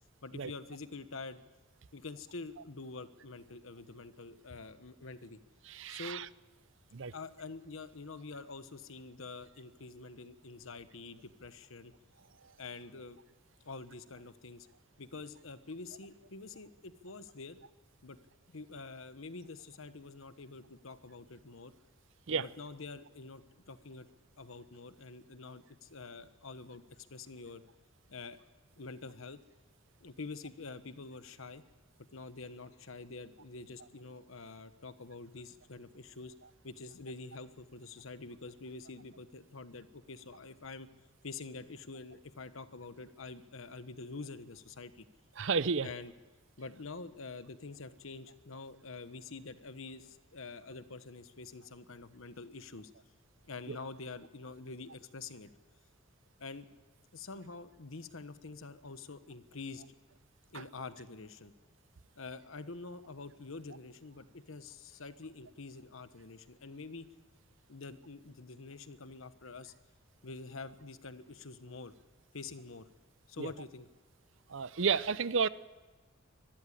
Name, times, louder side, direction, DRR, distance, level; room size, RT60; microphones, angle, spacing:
voice 1, 0.2-1.4 1.9-5.4 5.9-6.2 7.1-11.9 12.6-13.2 13.6-14.7 15.0-17.6 18.0-18.2 18.5-21.7 22.3-24.1 24.4-26.8 27.1-27.6 28.1-28.4 28.8-29.4 30.0-31.6 32.1-36.3 36.6-40.9 41.2-45.1 45.8-46.1 46.6-52.9 53.5-55.5 56.4-56.7 57.1-59.8 60.5-61.5 62.2-67.1 67.7-69.7 70.2-71.9 72.3-72.9 73.3-73.9, left 3 dB, 75° left, 12 dB, 1.1 m, -46 dB
voice 2, 5.7-6.3 6.9-7.1 22.3-22.4 45.4-45.9 53.7-53.8 60.5-60.6 73.4-73.5 74.5-75.5, right 5 dB, 65° right, 17 dB, 0.6 m, -31 dB
23.5 x 13.5 x 10.0 m, 1.2 s
head